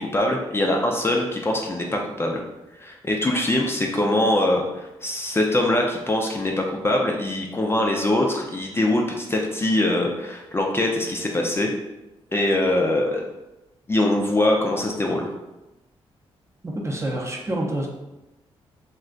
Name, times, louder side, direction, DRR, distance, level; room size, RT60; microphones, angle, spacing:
voice 1, 0.0-2.4 2.8-11.7 12.3-13.2 13.9-15.3, left 1 dB, 20° left, 0 dB, 0.4 m, -23 dB
voice 2, 16.6-17.9, right 1 dB, 25° right, 0 dB, 0.6 m, -27 dB
2.4 x 2.2 x 3.7 m, 0.99 s
cardioid pair, 70°, 11 cm